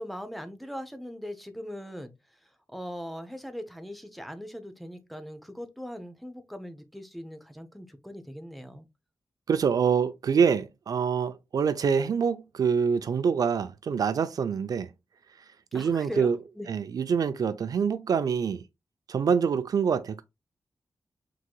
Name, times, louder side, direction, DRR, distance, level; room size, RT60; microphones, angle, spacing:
voice 1, 0.0-2.1 2.4-8.9 15.7-16.3 16.6-16.7, equal, ahead, 0.7 m, -40 dB
voice 2, 9.5-14.9 15.7-16.4 16.7-18.6 19.1-20.2, right 6 dB, 70° right, 0.4 m, -25 dB
4.6 x 3.7 x 2.2 m
wide cardioid pair, 100°, 7 cm